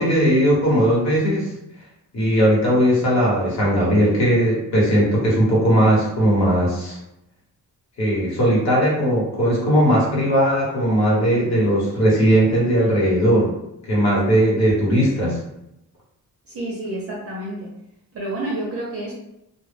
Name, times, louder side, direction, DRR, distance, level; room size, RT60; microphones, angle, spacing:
voice 1, 0.0-1.5 2.1-7.0 8.0-13.5 13.9-15.4, equal, 50° left, -5 dB, 1.1 m, -18 dB
voice 2, 16.5-17.7 18.1-19.1, right 1 dB, 40° right, -4 dB, 0.6 m, -29 dB
2.2 x 2.1 x 3.3 m, 0.82 s
wide cardioid pair, 175°, 35 cm